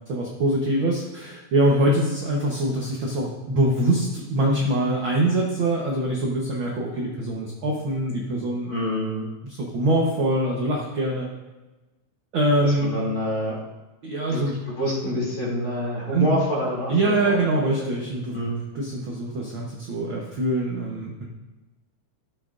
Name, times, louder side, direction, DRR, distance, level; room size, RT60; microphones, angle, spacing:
voice 1, 0.1-8.7 9.4-11.3 12.3-12.9 14.0-14.5 16.1-16.4 16.9-18.4 18.7-21.3, right 1 dB, 60° right, -2 dB, 1.3 m, -24 dB
voice 2, 8.7-9.3 12.6-13.6 14.3-17.4 18.3-18.6, left 1 dB, 30° left, -6 dB, 3.1 m, -27 dB
13.5 x 8.6 x 2.6 m, 1.1 s
omnidirectional pair, 3.7 m